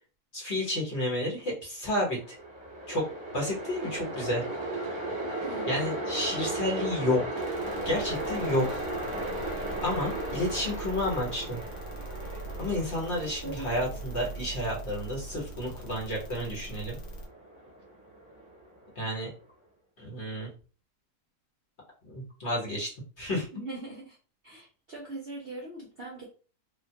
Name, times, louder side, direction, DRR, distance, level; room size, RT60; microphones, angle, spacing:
voice 1, 0.3-2.3 2.9-3.0 3.3-4.4 5.7-7.4 7.8-8.7 9.8-11.6 12.6-17.0 18.9-19.3 20.0-20.5 22.0-22.9 23.2-23.6, left 1 dB, 45° left, -4 dB, 1.5 m, -31 dB
Train, 2.1-19.1, right 1 dB, 25° right, 1.5 m, -36 dB
voice 2, 5.3-5.7 13.4-13.8 23.5-24.2 24.4-26.2, right 2 dB, 50° right, -3 dB, 0.8 m, -41 dB
sound 1, 7.4-17.3, right 2 dB, 85° left, 1.5 m, -42 dB
3.5 x 2.4 x 2.8 m, 0.37 s
omnidirectional pair, 1.7 m